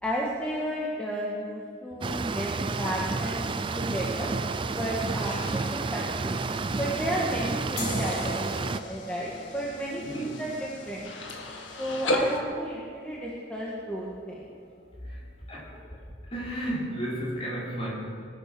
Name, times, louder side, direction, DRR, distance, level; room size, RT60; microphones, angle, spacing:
voice 1, 0.0-3.4 3.8-4.3 4.8-6.4 6.8-11.1 11.8-14.5, right 1 dB, 5° left, -5 dB, 1.7 m, -33 dB
sound 1, 2.0-8.8, right 3 dB, 25° right, 0.4 m, -30 dB
sound 2, 2.7-12.4, left 1 dB, 90° left, 1.8 m, -37 dB
sound 3, 7.8-15.1, left 3 dB, 60° left, 2.5 m, -43 dB
voice 2, 10.0-10.3 15.0-15.2 15.5-15.8 16.3-17.9, right 1 dB, 30° left, -5 dB, 4.3 m, -33 dB
21.0 x 9.7 x 6.2 m, 2.2 s
head